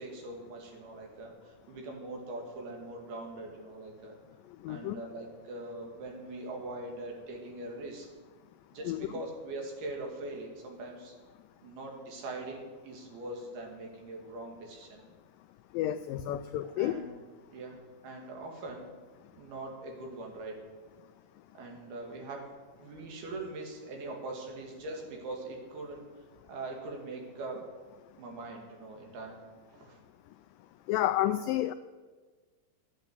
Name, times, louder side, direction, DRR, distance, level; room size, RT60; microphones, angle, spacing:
voice 1, 0.0-4.1 4.7-8.1 8.7-11.1 11.6-15.0 16.6-17.2 17.5-17.8 18.0-18.9 19.3-20.6 21.5-22.4 22.8-26.0 26.5-27.6 28.2-29.4 29.7-30.0, right 2 dB, 75° right, 1 dB, 4.3 m, -42 dB
voice 2, 4.6-5.0 8.9-9.0 15.7-17.0 30.9-31.7, left 13 dB, 85° left, 10 dB, 1.9 m, -30 dB
13.0 x 9.1 x 8.0 m, 1.4 s
omnidirectional pair, 4.4 m